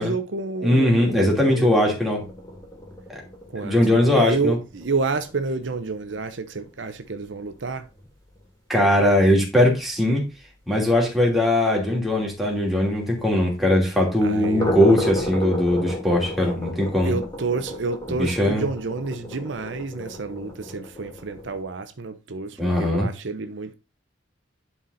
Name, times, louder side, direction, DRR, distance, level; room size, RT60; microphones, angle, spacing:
voice 1, 0.0-2.0 3.5-7.9 14.2-14.7 17.0-23.7, right 4 dB, 70° right, 0.8 m, -29 dB
voice 2, 0.6-2.2 3.6-4.6 8.7-10.2 10.7-17.1 18.1-18.6 22.6-23.1, left 1 dB, ahead, 2.7 m, -20 dB
sound 1, 2.2-8.1 8.3-8.5 8.9-9.0 9.3-9.4 9.8-9.9 12.7-12.8 14.2-21.6, left 1 dB, 20° left, 2.3 m, -33 dB
11.0 x 4.1 x 4.1 m
head